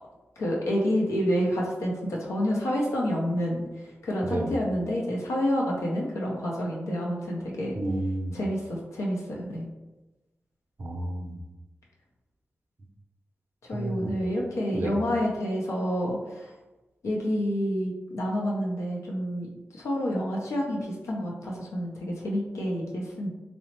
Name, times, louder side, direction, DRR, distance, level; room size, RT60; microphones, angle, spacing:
voice 1, 0.4-7.8 8.3-9.7 13.7-16.5 17.0-23.3, equal, 90° left, -2 dB, 0.6 m, -28 dB
voice 2, 7.8-8.4 10.8-11.4 13.7-14.2 14.7-14.9, right 1 dB, 45° right, 3 dB, 0.5 m, -31 dB
2.9 x 2.0 x 2.9 m, 1.1 s
cardioid pair, 45°, 5 cm